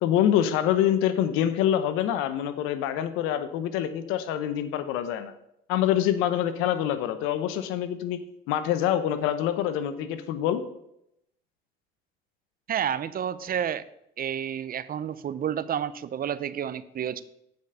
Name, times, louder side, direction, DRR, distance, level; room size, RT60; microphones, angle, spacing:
voice 1, 0.0-5.3 5.7-8.2 8.5-10.6, left 10 dB, 80° left, 11 dB, 0.9 m, -25 dB
voice 2, 12.7-13.8 14.2-17.2, right 9 dB, 45° right, 15 dB, 0.7 m, -30 dB
8.2 x 5.2 x 6.7 m, 0.78 s
supercardioid pair, 70°, 21 cm